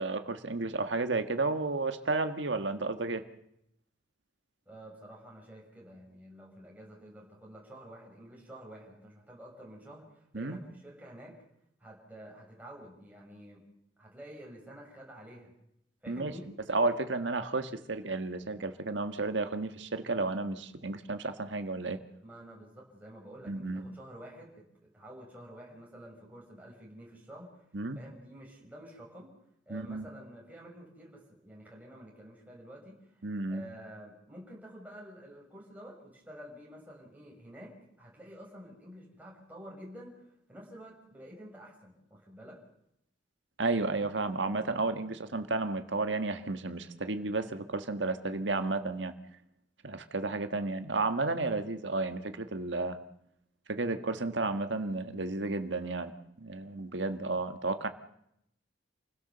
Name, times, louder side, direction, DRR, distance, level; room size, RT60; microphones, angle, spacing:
voice 1, 0.0-3.2 10.3-10.6 16.1-16.3 16.7-22.0 23.5-23.8 27.7-28.0 29.7-30.1 33.2-33.6 43.6-49.1 49.8-53.0 53.7-56.1 56.4-57.9, right 3 dB, 70° right, 8 dB, 1.6 m, -32 dB
voice 2, 4.7-11.3 11.8-13.6 14.0-15.5 16.0-16.5 22.2-24.7 24.9-27.6 27.9-29.3 29.7-42.6, equal, 10° right, -3 dB, 5.3 m, -50 dB
28.0 x 16.5 x 6.8 m, 0.78 s
head